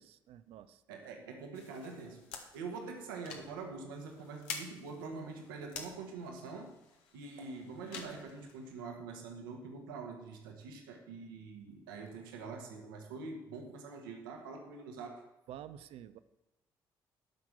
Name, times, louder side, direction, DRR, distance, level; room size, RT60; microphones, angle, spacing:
voice 1, 0.0-1.1 15.5-16.2, right 10 dB, 55° right, 13 dB, 0.6 m, -50 dB
voice 2, 0.9-6.7 7.1-15.3, right 4 dB, 75° right, 3 dB, 1.5 m, -45 dB
sound 1, 1.5-8.8, left 5 dB, 65° left, 1.2 m, -49 dB
12.0 x 5.9 x 7.2 m, 0.97 s
figure-of-eight pair, 40°, 12 cm